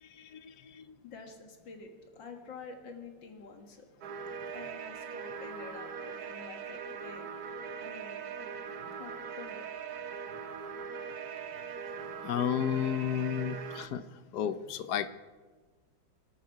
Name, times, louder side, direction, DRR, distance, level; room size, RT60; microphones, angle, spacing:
voice 1, 0.0-0.9 11.6-11.7 12.2-14.0 14.3-15.1, left 9 dB, 70° left, 13 dB, 1.2 m, -33 dB
voice 2, 1.0-3.9 4.5-7.3 7.8-8.5 9.0-9.7 10.3-10.4, left 4 dB, 85° left, 4 dB, 2.5 m, -48 dB
sound 1, 4.0-13.9, right 6 dB, 60° right, 1.3 m, -41 dB
25.5 x 12.0 x 4.7 m, 1.4 s
omnidirectional pair, 2.0 m